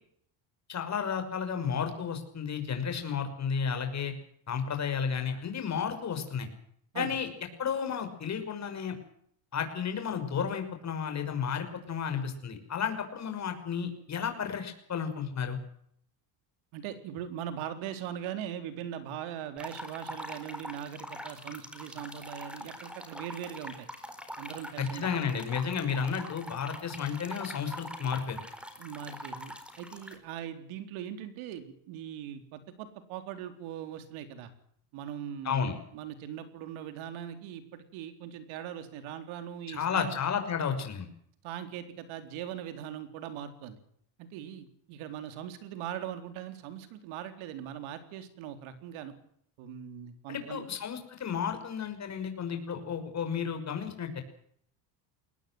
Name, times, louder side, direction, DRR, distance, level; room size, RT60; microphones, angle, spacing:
voice 1, 0.7-4.1 4.5-6.5 6.9-7.3 7.6-8.9 9.5-15.6 24.8-28.4 35.4-35.8 39.7-41.1 50.3-54.2, left 7 dB, 35° left, 7 dB, 6.0 m, -32 dB
voice 2, 16.7-23.9 24.4-25.1 28.8-34.5 34.9-40.1 41.4-43.8 44.2-49.1 49.6-50.7, right 10 dB, 75° right, 9 dB, 4.0 m, -40 dB
sound 1, 19.6-30.1, equal, ahead, 4.3 m, -43 dB
22.0 x 19.5 x 7.8 m, 0.67 s
cardioid pair, 135°, 49 cm